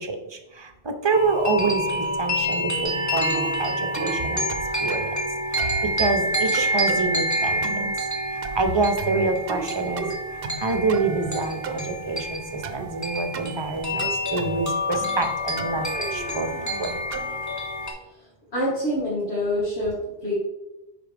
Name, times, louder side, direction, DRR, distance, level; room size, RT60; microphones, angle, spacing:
voice 1, 0.0-5.1 5.5-7.6 8.3-16.5 16.8-16.9, right 3 dB, 30° right, 6 dB, 0.7 m, -27 dB
sound 1, 1.1-17.9, equal, 15° left, 1.2 m, -28 dB
sound 2, 3.2-3.5 3.9-4.2 4.5-5.1 5.6-5.8 6.5-7.0 7.6-7.9 8.4-8.7 9.0-9.7 10.0-10.6 10.9-11.8 12.6-12.9 13.3-13.5 14.0-14.6 14.9-15.3 15.6-17.4, right 5 dB, 65° right, 0.8 m, -34 dB
voice 2, 18.5-20.3, left 1 dB, 80° left, -7 dB, 2.1 m, -26 dB
9.9 x 4.3 x 3.4 m, 0.95 s
omnidirectional pair, 1.1 m